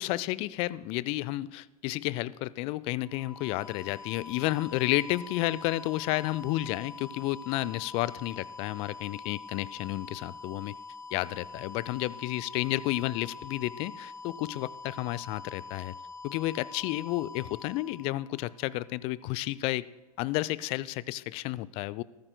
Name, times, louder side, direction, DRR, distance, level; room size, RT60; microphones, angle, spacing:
voice 1, 0.0-10.8 11.1-16.0 16.2-19.9 20.2-22.0, left 17 dB, 30° left, 21 dB, 0.4 m, -31 dB
sound 1, 3.0-18.8, left 4 dB, 70° left, 2.2 m, -45 dB
22.5 x 14.0 x 2.2 m, 1.1 s
figure-of-eight pair, 95°, 19 cm